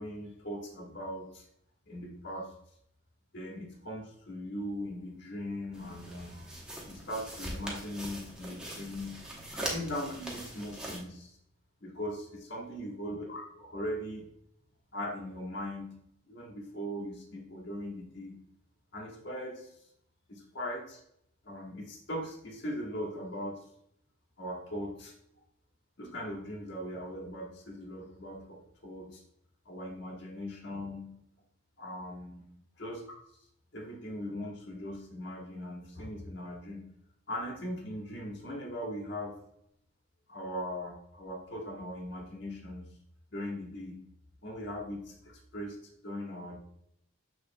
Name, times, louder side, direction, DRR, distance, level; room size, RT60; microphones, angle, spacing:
voice 1, 0.0-1.4 1.9-2.5 3.3-6.5 6.9-9.2 9.5-11.4 11.8-14.2 14.9-16.0 16.3-18.4 18.9-19.7 20.3-21.0 21.4-23.7 24.4-25.1 26.0-29.2 29.6-31.2 31.8-32.4 32.8-33.0 33.7-36.9 37.3-39.4 40.3-42.8 43.3-44.0 44.4-45.8 46.0-46.6, equal, 55° left, -1 dB, 1.5 m, -39 dB
sound 1, 5.7-11.0, right 1 dB, 5° right, 1.0 m, -41 dB
7.0 x 6.2 x 2.3 m, 0.73 s
head